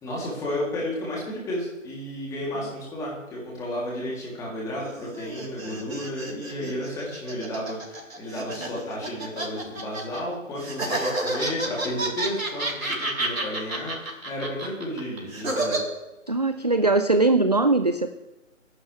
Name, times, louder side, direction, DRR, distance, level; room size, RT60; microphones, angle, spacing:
voice 1, 0.0-15.8, left 1 dB, 10° left, -4 dB, 3.0 m, -32 dB
sound 1, 4.8-10.2 10.6-15.8, right 2 dB, 85° right, 3.9 m, -30 dB
voice 2, 16.3-18.1, right 3 dB, 35° right, 9 dB, 0.4 m, -21 dB
26.5 x 11.5 x 3.4 m, 1.0 s
figure-of-eight pair, 150°, 40 cm